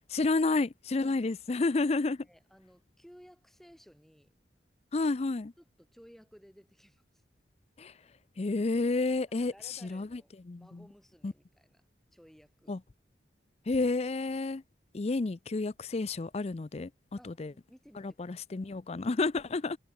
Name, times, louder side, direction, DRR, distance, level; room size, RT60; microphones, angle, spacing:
voice 1, 0.1-2.3 4.9-5.5 7.8-7.9 8.4-10.2 10.5-10.8 11.2-11.3 12.7-12.8 13.7-14.6 14.9-16.9 17.2-17.5 18.0-19.8, left 3 dB, 35° left, 0.5 m, -30 dB
voice 2, 2.2-4.4 5.6-7.2 9.4-10.3 10.6-11.8 12.1-12.7 17.2-18.7, equal, ahead, 7.0 m, -58 dB
head